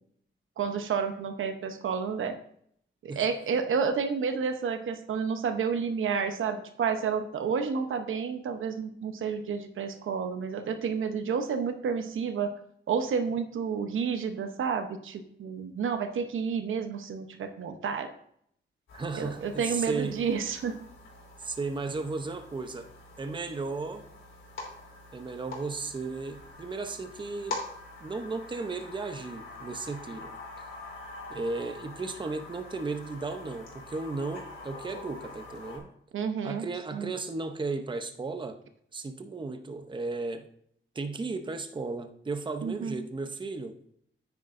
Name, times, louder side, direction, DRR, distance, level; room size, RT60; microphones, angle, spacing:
voice 1, 0.6-2.4 3.0-12.5 12.9-18.1 19.1-20.8 36.1-36.7 36.9-37.1 42.6-43.0, right 6 dB, 90° right, 8 dB, 0.9 m, -30 dB
sound 1, 18.9-35.8, left 2 dB, 85° left, 3.3 m, -45 dB
voice 2, 18.9-20.2 21.4-22.9 23.2-24.1 25.1-27.6 28.0-30.3 31.3-35.9 36.4-38.6 38.9-40.5 40.9-43.8, right 3 dB, 25° right, 7 dB, 0.7 m, -35 dB
9.3 x 9.2 x 2.6 m, 0.68 s
wide cardioid pair, 140°, 20 cm